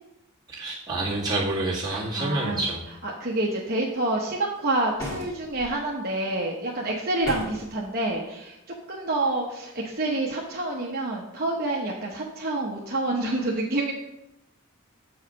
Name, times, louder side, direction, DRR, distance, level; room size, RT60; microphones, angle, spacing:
voice 1, 0.5-2.8, right 2 dB, 20° right, -7 dB, 1.9 m, -28 dB
voice 2, 1.9-2.6 3.0-8.6 8.9-13.9, right 2 dB, 45° right, -2 dB, 0.9 m, -28 dB
sound 1, 5.0-5.7 7.2-7.7, left 1 dB, 15° left, 1.7 m, -34 dB
7.6 x 4.8 x 5.2 m, 0.88 s
head